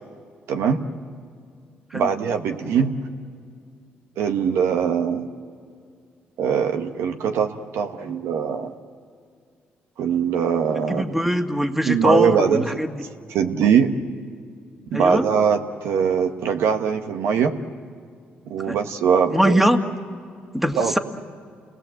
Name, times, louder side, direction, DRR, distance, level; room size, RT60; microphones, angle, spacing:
voice 1, 0.5-0.8 1.9-2.9 4.2-5.3 6.4-8.7 10.0-11.0 11.9-12.8 13.3-13.9 14.9-17.5 18.5-19.6 20.7-20.9, right 7 dB, 80° right, 6 dB, 1.4 m, -21 dB
voice 2, 10.9-12.9 14.9-15.3 18.6-18.8 19.3-19.8 20.5-21.0, equal, 5° right, 6 dB, 1.8 m, -21 dB
29.5 x 20.0 x 7.9 m, 2.2 s
supercardioid pair, 70°, 4 cm